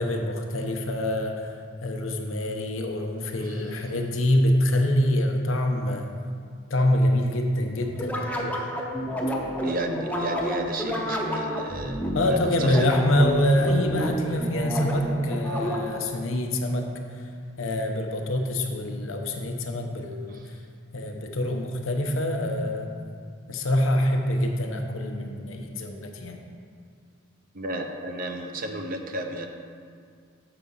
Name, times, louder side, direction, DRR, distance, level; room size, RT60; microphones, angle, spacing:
voice 1, 0.0-1.5 1.8-6.1 6.7-8.1 12.1-16.9 17.6-20.4 20.9-22.9 23.5-26.4, left 1 dB, 85° left, 3 dB, 0.8 m, -25 dB
voice 2, 3.4-3.8 9.6-12.9 20.3-20.5 27.5-29.5, right 1 dB, 45° right, 4 dB, 0.6 m, -33 dB
sound 1, 8.0-16.1, equal, 5° left, 0.6 m, -30 dB
6.8 x 4.8 x 5.4 m, 2.1 s
head